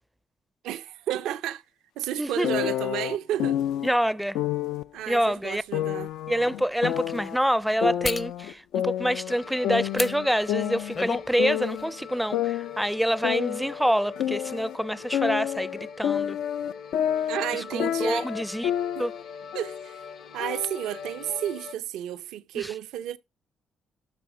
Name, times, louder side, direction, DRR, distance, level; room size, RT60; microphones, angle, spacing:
voice 1, 0.6-1.6 2.0-3.6 4.9-6.1 17.3-18.3 18.9-19.1 19.5-20.0 20.3-23.2, right 12 dB, 90° right, 0.6 m, -32 dB
voice 2, 2.2-2.5 3.8-4.4 5.1-5.6 6.3-16.4 17.5-18.7 19.0-19.1 22.5-22.7, equal, ahead, 0.4 m, -26 dB
sound 1, 2.4-3.9 4.4-4.9 5.7-7.4 7.8-9.4 9.6-11.9 12.3-14.8 15.1-19.2 19.5-19.9 20.4-21.4, left 11 dB, 85° left, 0.4 m, -29 dB
sound 2, 5.2-5.3 5.9-6.1 8.0-8.3 9.9-10.1 10.7-11.3 11.7-11.8, left 4 dB, 35° left, 0.6 m, -30 dB
sound 3, 9.3-21.7, left 6 dB, 70° left, 0.8 m, -42 dB
12.5 x 4.1 x 4.9 m
cardioid pair, 90°, 0 cm